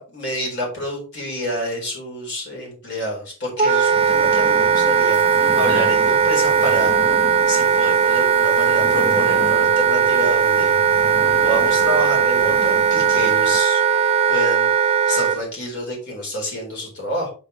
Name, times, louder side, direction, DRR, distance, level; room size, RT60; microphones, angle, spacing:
voice 1, 0.0-7.0 7.5-11.1 11.4-13.8 14.3-17.3, equal, 50° left, -1 dB, 4.1 m, -28 dB
Wind instrument woodwind instrument, 3.6-15.4, right 7 dB, 25° right, 0.6 m, -18 dB
sound 1, 3.9-13.6, equal, 10° left, 0.7 m, -35 dB
8.2 x 6.4 x 3.2 m, 0.35 s
head